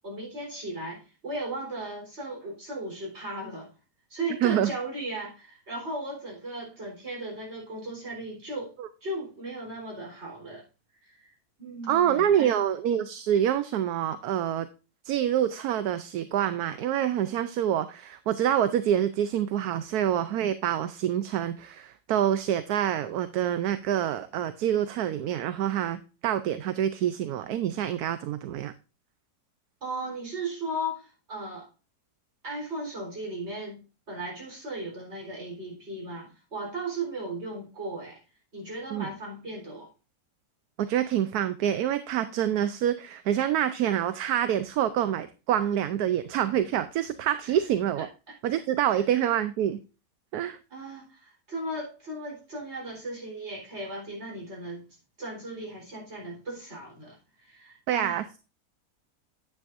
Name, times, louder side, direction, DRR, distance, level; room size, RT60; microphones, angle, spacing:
voice 1, 0.0-3.7 4.1-8.7 9.0-10.6 11.0-11.3 11.6-12.5 29.8-31.7 32.4-38.2 38.5-39.9 47.4-47.5 48.0-48.4 48.9-49.0 50.7-54.9 55.2-58.2, right 1 dB, 40° right, 4.5 m, -36 dB
voice 2, 4.4-4.7 8.8-8.9 11.9-14.7 15.0-28.7 38.9-39.1 40.8-48.1 48.4-49.8 50.3-50.6 57.9-58.4, right 10 dB, 70° right, 1.1 m, -26 dB
9.6 x 9.0 x 2.6 m
omnidirectional pair, 1.8 m